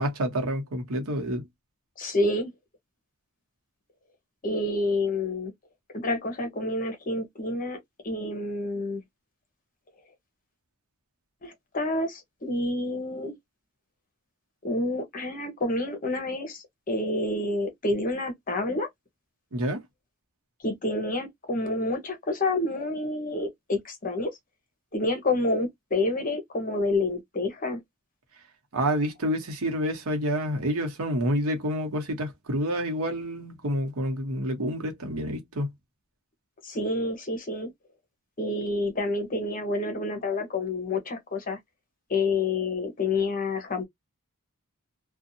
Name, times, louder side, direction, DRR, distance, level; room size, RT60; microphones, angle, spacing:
voice 1, 0.0-1.4 19.5-19.8 28.7-35.7, equal, 70° right, 0.9 m, -28 dB
voice 2, 2.0-2.5 4.4-5.5 5.9-7.8 8.0-9.0 11.4-13.3 14.6-18.9 20.6-24.3 24.9-27.8 36.6-37.7 38.4-41.6 42.1-43.8, left 2 dB, 40° left, 0.9 m, -28 dB
2.6 x 2.3 x 2.6 m
head